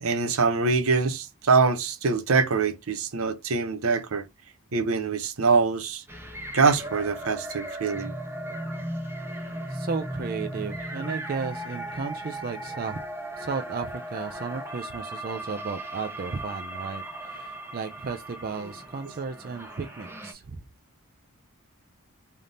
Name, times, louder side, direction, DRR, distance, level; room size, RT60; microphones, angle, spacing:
voice 1, 0.0-4.3 4.7-6.0 6.5-8.1, right 4 dB, 70° right, 0.7 m, -24 dB
sound 1, 6.1-20.3, right 1 dB, 10° right, 0.8 m, -37 dB
voice 2, 9.7-13.0 13.4-20.6, right 5 dB, 40° right, 0.4 m, -34 dB
3.5 x 2.7 x 3.7 m
head